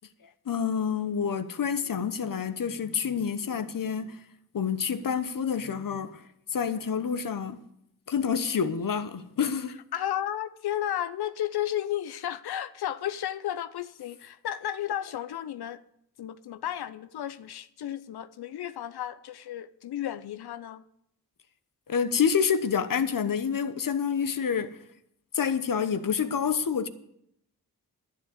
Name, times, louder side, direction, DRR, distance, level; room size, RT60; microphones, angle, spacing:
voice 1, 0.5-4.2 4.5-6.2 6.5-7.6 8.1-9.7 21.9-24.8 25.3-26.9, left 7 dB, 60° left, 1.0 m, -28 dB
voice 2, 9.9-15.8 16.2-20.8, left 11 dB, 80° left, 0.6 m, -33 dB
11.5 x 7.6 x 8.0 m
cardioid pair, 55°, 38 cm